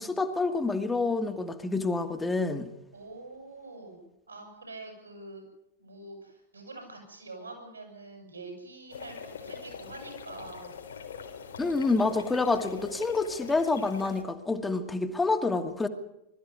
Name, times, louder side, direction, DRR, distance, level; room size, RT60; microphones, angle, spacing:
voice 1, 0.0-2.7 11.6-15.9, left 3 dB, 10° left, 6 dB, 1.5 m, -28 dB
voice 2, 2.9-5.4 5.8-10.7, right 2 dB, 80° right, 3 dB, 7.6 m, -45 dB
sound 1, 8.9-14.2, left 6 dB, 70° left, 3.7 m, -43 dB
21.5 x 13.5 x 9.6 m, 0.84 s
figure-of-eight pair, 90°, 0 cm